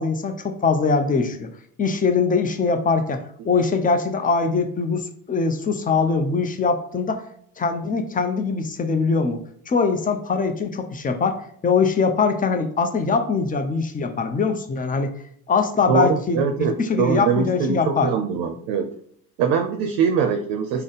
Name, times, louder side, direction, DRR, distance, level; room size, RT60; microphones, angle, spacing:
voice 1, 0.0-1.5 1.8-7.2 7.6-15.1 15.5-18.1, left 4 dB, 20° left, 6 dB, 0.5 m, -22 dB
voice 2, 15.9-18.9 19.4-20.8, right 6 dB, 60° right, 5 dB, 0.6 m, -22 dB
3.6 x 2.1 x 4.0 m, 0.63 s
hypercardioid pair, 60°, 47 cm